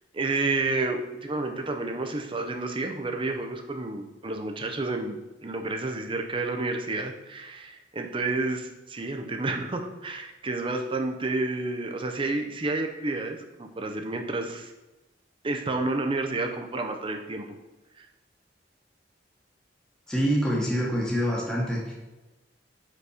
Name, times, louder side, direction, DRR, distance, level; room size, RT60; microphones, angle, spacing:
voice 1, 0.1-14.7 15.4-17.4 18.0-18.1, right 2 dB, 30° right, 4 dB, 0.6 m, -30 dB
voice 2, 20.1-21.9, equal, 5° left, -6 dB, 1.2 m, -26 dB
5.3 x 4.0 x 4.8 m, 1.1 s
head